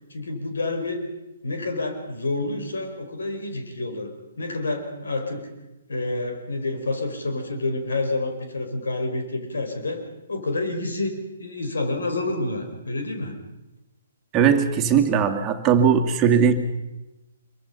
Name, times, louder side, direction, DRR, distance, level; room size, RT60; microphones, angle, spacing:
voice 1, 0.1-1.0 1.4-4.1 4.4-5.5 5.9-10.0 10.3-13.3, left 2 dB, 70° left, 5 dB, 5.1 m, -28 dB
voice 2, 14.3-16.5, right 7 dB, 20° right, 5 dB, 2.3 m, -19 dB
26.0 x 23.5 x 5.7 m, 1.0 s
figure-of-eight pair, 130°, 0 cm